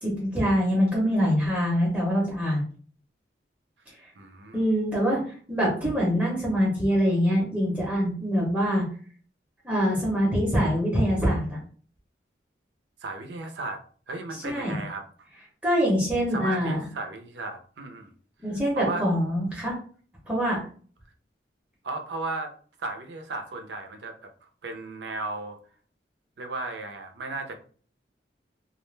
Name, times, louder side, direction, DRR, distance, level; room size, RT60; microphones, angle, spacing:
voice 1, 0.0-2.6 4.5-8.9 9.6-11.6 14.4-14.8 15.6-16.8 18.4-19.7 20.3-20.6, equal, 10° right, -4 dB, 0.8 m, -24 dB
voice 2, 4.2-4.6 13.0-13.8 14.1-15.0 16.3-18.1 18.7-19.0 21.8-22.5 22.8-24.1 24.6-25.6 26.4-27.6, right 2 dB, 80° right, 5 dB, 0.5 m, -35 dB
2.4 x 2.1 x 3.1 m, 0.43 s
head